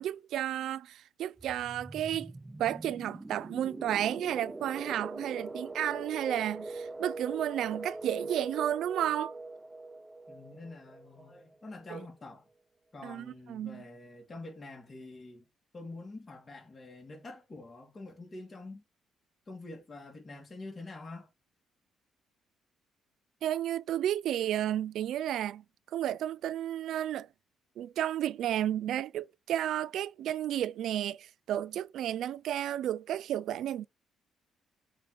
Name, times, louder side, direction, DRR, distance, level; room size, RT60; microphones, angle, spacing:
voice 1, 0.0-2.3 2.6-9.3 11.9-12.0 13.0-13.8 23.4-25.6 25.9-27.3 27.8-33.9, right 11 dB, 75° right, 0.4 m, -32 dB
sound 1, 1.4-11.9, right 2 dB, 15° right, 0.5 m, -42 dB
voice 2, 10.3-12.5 12.9-15.5 15.7-18.8 19.5-21.3, left 2 dB, 30° left, 2.8 m, -46 dB
7.7 x 3.2 x 4.1 m
cardioid pair, 90°, 0 cm